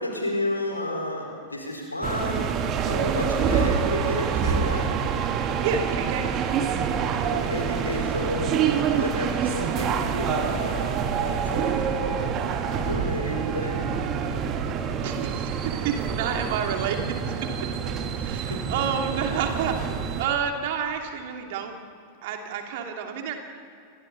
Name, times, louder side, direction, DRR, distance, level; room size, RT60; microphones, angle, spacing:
voice 1, 0.0-2.5 2.9-4.9 7.2-13.9 18.3-18.6, left 1 dB, 85° left, 0 dB, 4.7 m, -31 dB
sound 1, 2.0-20.3, right 7 dB, 35° right, 1.8 m, -26 dB
voice 2, 5.6-6.7 15.0-17.8 18.2-21.7 22.2-23.3, right 7 dB, 50° right, 3 dB, 2.9 m, -30 dB
28.5 x 23.5 x 4.1 m, 2.3 s
figure-of-eight pair, 90°, 0 cm